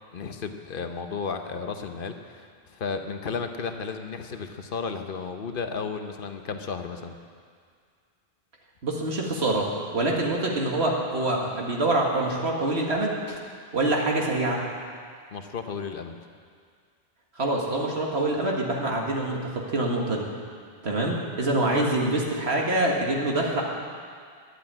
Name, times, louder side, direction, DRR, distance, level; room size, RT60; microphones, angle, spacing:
voice 1, 0.1-7.2 15.3-16.2, left 5 dB, 60° left, 6 dB, 0.9 m, -33 dB
voice 2, 8.8-9.7 9.9-13.4 13.7-14.6 17.4-20.3 20.8-23.6, right 2 dB, 85° right, -1 dB, 2.0 m, -25 dB
11.5 x 8.2 x 8.9 m, 2.1 s
omnidirectional pair, 1.1 m